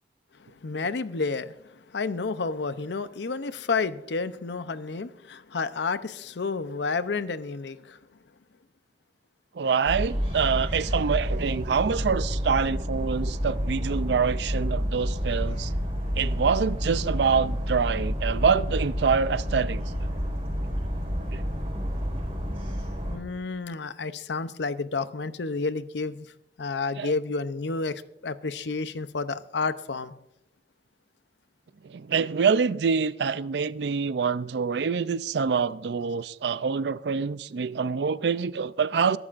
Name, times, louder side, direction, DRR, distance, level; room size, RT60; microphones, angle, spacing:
voice 1, 0.4-8.0 23.1-26.3 26.6-30.1, left 4 dB, 80° left, 0.6 m, -30 dB
voice 2, 9.5-15.7 16.2-19.8 21.3-21.4 27.0-27.1 31.8-39.2, right 6 dB, 75° right, 0.4 m, -26 dB
sound 1, 9.9-23.2, equal, 35° right, 4.6 m, -29 dB
22.0 x 12.0 x 2.5 m
head